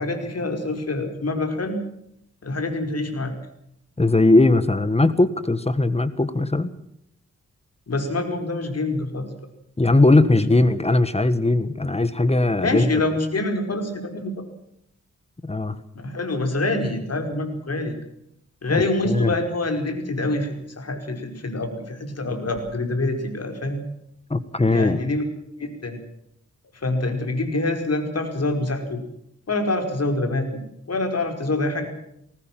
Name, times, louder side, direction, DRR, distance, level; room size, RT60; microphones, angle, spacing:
voice 1, 0.0-1.8 2.4-3.3 7.9-9.3 10.3-10.4 12.6-14.5 15.9-18.0 18.6-23.9 24.7-25.3 25.6-26.0 26.7-29.0 29.5-30.6 30.9-31.9, left 2 dB, 60° left, 5 dB, 5.0 m, -26 dB
voice 2, 4.0-6.7 9.8-12.9 15.4-15.8 18.7-19.3 24.3-25.0, left 2 dB, 20° left, 13 dB, 1.5 m, -19 dB
20.5 x 19.0 x 7.5 m, 0.76 s
wide cardioid pair, 80°, 29 cm